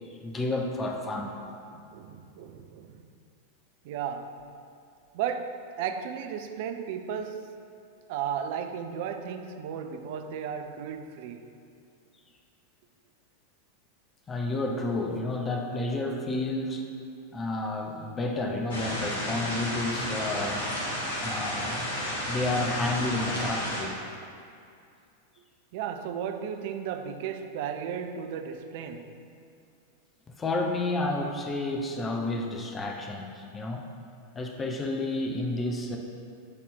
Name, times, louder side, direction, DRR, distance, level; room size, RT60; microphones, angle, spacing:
voice 1, 0.1-1.3 14.3-16.9 17.3-20.8 21.2-21.9 22.3-24.0 30.4-33.9 34.3-36.0, left 2 dB, 20° left, 0.7 m, -30 dB
voice 2, 1.7-3.1 3.8-4.3 5.1-7.6 8.1-11.5 25.7-29.2, right 8 dB, 50° right, 0.4 m, -35 dB
sound 1, 18.7-23.8, equal, 60° left, 1.4 m, -32 dB
8.1 x 4.2 x 3.6 m
figure-of-eight pair, 90°, 0 cm